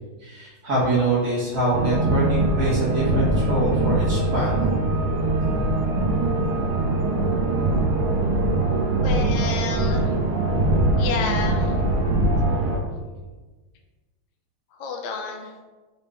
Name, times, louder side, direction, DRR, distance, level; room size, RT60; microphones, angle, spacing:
voice 1, 0.2-4.6, right 2 dB, 40° right, -7 dB, 1.7 m, -24 dB
sound 1, 1.7-12.8, right 2 dB, 85° right, 1.7 m, -22 dB
voice 2, 9.0-10.1 11.0-11.7 14.8-15.5, left 5 dB, 75° left, 3 dB, 1.2 m, -30 dB
5.0 x 3.1 x 3.3 m, 1.3 s
omnidirectional pair, 2.4 m